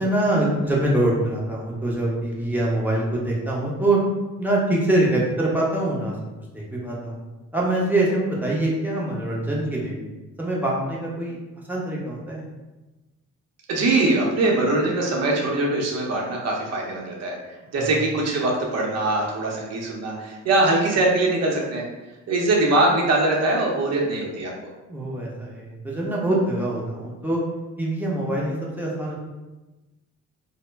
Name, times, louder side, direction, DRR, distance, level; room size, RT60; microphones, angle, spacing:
voice 1, 0.0-4.0 4.4-6.2 6.5-7.2 7.5-10.0 10.4-11.4 11.7-12.5 17.8-17.9 24.9-27.4 27.8-29.2, right 1 dB, 5° right, -4 dB, 0.6 m, -24 dB
voice 2, 13.7-21.8 22.3-24.5, right 2 dB, 55° right, -2 dB, 0.7 m, -22 dB
2.0 x 2.0 x 3.3 m, 1.1 s
cardioid pair, 90°, 30 cm